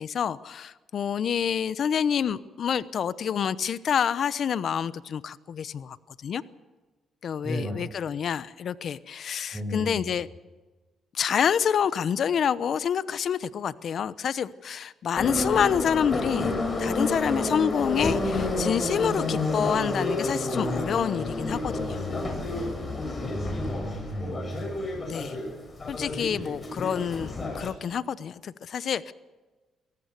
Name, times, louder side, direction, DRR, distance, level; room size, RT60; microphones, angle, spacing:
voice 1, 0.0-6.0 6.2-6.4 7.2-10.3 11.1-22.0 25.0-25.4 25.9-29.1, left 8 dB, 60° left, 16 dB, 0.9 m, -27 dB
voice 2, 7.4-7.8 9.5-10.1 23.3-24.7, equal, 5° right, 2 dB, 7.5 m, -33 dB
Subway metro underground, 15.2-27.7, left 2 dB, 30° left, 6.9 m, -30 dB
23.5 x 18.5 x 6.8 m, 1.3 s
cardioid pair, 90°, 0 cm